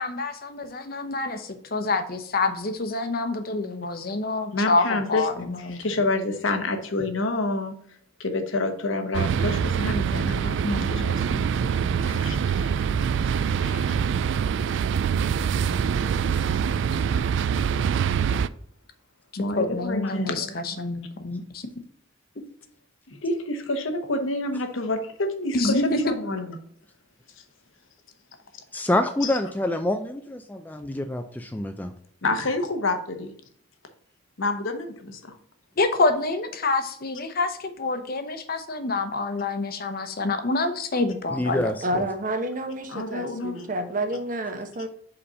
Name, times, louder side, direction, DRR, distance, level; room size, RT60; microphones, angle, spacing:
voice 1, 0.0-5.8 10.6-11.1 19.6-21.7 25.5-25.9 35.8-41.7, left 3 dB, 50° left, 8 dB, 0.8 m, -27 dB
voice 2, 4.5-7.7 8.2-11.7 12.0-12.9 13.6-14.1 19.4-20.8 23.1-26.6 29.2-29.3 32.2-33.3 34.4-35.3 42.9-43.7, left 2 dB, 80° left, 6 dB, 1.0 m, -28 dB
sound 1, 9.1-18.5, right 7 dB, 65° right, 0.3 m, -24 dB
voice 3, 28.7-31.9 41.3-42.1, left 1 dB, 10° left, 6 dB, 0.4 m, -27 dB
voice 4, 41.8-44.9, right 1 dB, 45° right, 6 dB, 0.9 m, -29 dB
5.3 x 4.2 x 5.5 m, 0.64 s
head